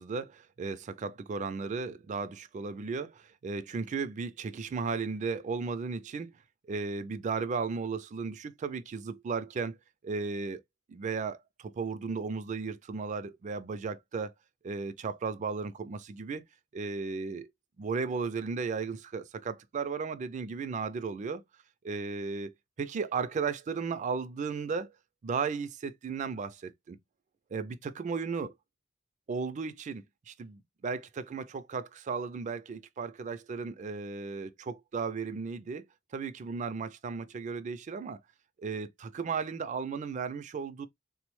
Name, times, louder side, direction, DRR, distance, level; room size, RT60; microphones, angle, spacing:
voice 1, 0.0-6.3 6.7-9.8 10.0-10.6 10.9-14.3 14.6-16.4 16.7-17.5 17.8-21.4 21.8-24.9 25.2-27.0 27.5-28.5 29.3-35.9 36.1-38.2 38.6-40.9, right 5 dB, 40° right, 0.3 m, -35 dB
3.6 x 2.0 x 3.0 m
head